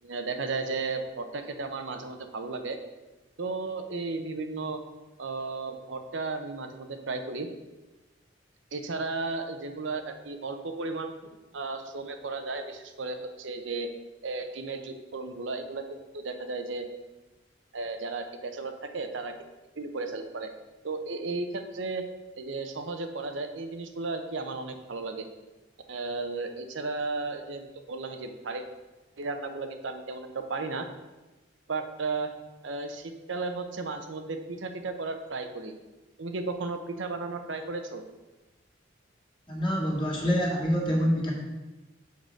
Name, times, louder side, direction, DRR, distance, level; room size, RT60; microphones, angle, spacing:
voice 1, 0.0-2.8 3.4-4.8 5.2-7.5 8.7-11.1 11.5-13.9 14.2-16.9 17.7-19.3 19.8-20.5 20.8-22.0 22.4-25.3 25.9-28.6 29.2-30.9 31.7-32.3 32.6-35.7 36.2-38.0, right 3 dB, 80° right, 6 dB, 0.8 m, -34 dB
voice 2, 39.5-41.3, equal, 25° left, -3 dB, 2.0 m, -26 dB
6.6 x 4.8 x 6.3 m, 1.1 s
head